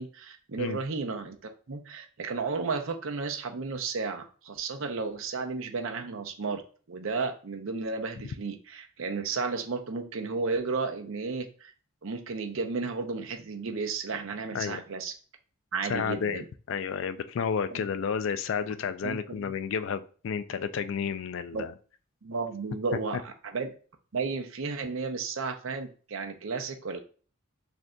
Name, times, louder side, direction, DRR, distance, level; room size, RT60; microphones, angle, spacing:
voice 1, 0.0-1.4 1.7-6.6 6.9-11.7 12.0-15.1 15.7-16.5 17.7-17.8 18.6-18.7 19.0-19.5 21.5-21.6 22.2-23.7 24.1-27.0, right 4 dB, 70° right, 0.6 m, -33 dB
voice 2, 15.9-21.7, left 6 dB, 65° left, 0.3 m, -31 dB
6.1 x 2.6 x 2.2 m
head